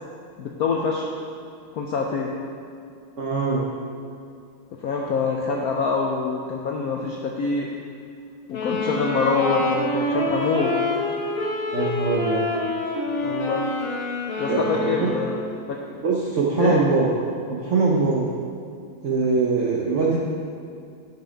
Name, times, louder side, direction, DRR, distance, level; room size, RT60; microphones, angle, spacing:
voice 1, 0.4-1.0 1.7-2.3 4.8-7.7 8.5-10.7 13.2-13.7 14.4-15.3 15.7-15.8 16.6-16.8, left 4 dB, 75° left, 0 dB, 0.8 m, -25 dB
voice 2, 3.2-3.7 11.7-12.5 14.5-15.1 16.0-17.1 17.5-18.3 19.0-20.2, right 4 dB, 65° right, -3 dB, 0.7 m, -22 dB
sound 1, 8.5-15.6, left 2 dB, 40° left, 0.8 m, -27 dB
9.0 x 5.8 x 5.0 m, 2.4 s
omnidirectional pair, 2.3 m